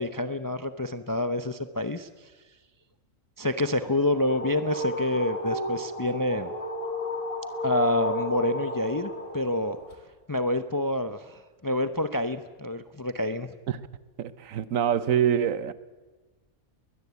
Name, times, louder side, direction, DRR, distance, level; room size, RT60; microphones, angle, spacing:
voice 1, 0.0-2.1 3.4-6.5 7.6-9.8 10.3-13.5, left 1 dB, 20° left, 0.7 m, -27 dB
sound 1, 3.8-10.0, left 1 dB, 80° left, 3.2 m, -33 dB
voice 2, 14.2-15.7, right 9 dB, 80° right, 1.3 m, -25 dB
21.0 x 21.0 x 8.3 m
omnidirectional pair, 1.4 m